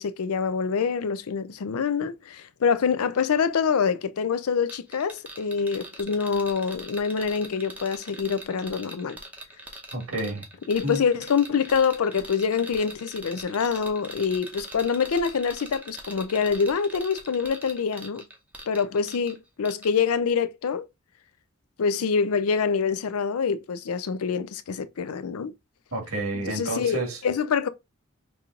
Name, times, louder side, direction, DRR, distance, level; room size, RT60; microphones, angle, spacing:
voice 1, 0.0-9.2 10.7-18.2 18.7-20.8 21.8-25.5 26.5-27.7, left 6 dB, 90° left, 0.5 m, -25 dB
sound 1, 4.7-19.4 19.6-19.9, right 1 dB, 5° right, 0.7 m, -42 dB
voice 2, 9.9-10.5 10.8-11.0 25.9-27.2, right 2 dB, 80° right, 1.6 m, -30 dB
5.3 x 2.9 x 2.4 m
head